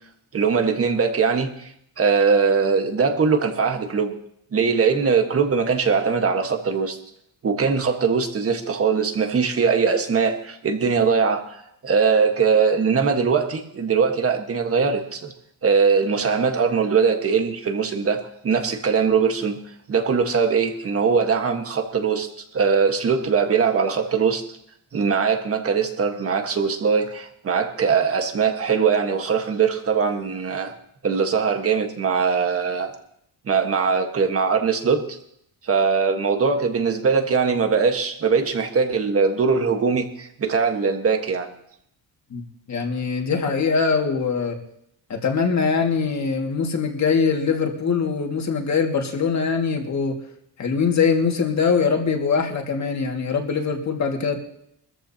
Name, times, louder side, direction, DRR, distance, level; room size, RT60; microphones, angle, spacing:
voice 1, 0.3-1.7 2.0-4.2 4.5-7.0 7.4-15.3 15.6-19.6 19.9-22.3 22.5-24.4 24.9-30.7 31.0-32.9 33.5-35.2 35.6-41.5, right 5 dB, 40° right, 5 dB, 1.5 m, -21 dB
voice 2, 42.7-44.6 45.1-50.2 50.6-54.4, left 5 dB, 45° left, 2 dB, 2.2 m, -22 dB
24.0 x 14.0 x 2.9 m, 0.73 s
cardioid pair, 150°, 37 cm